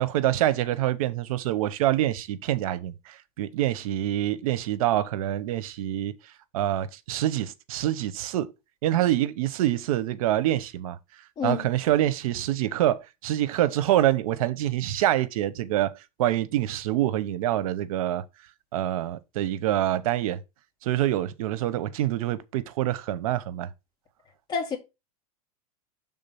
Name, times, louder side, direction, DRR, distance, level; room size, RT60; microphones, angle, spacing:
voice 1, 0.0-6.1 6.5-8.5 8.8-11.0 11.4-15.9 16.2-18.2 18.7-20.4 20.8-23.7, right 13 dB, 70° right, 0.8 m, -26 dB
voice 2, 11.4-11.7 24.5-24.8, left 6 dB, 20° left, 2.1 m, -28 dB
6.6 x 3.7 x 5.7 m
supercardioid pair, 145°, 19 cm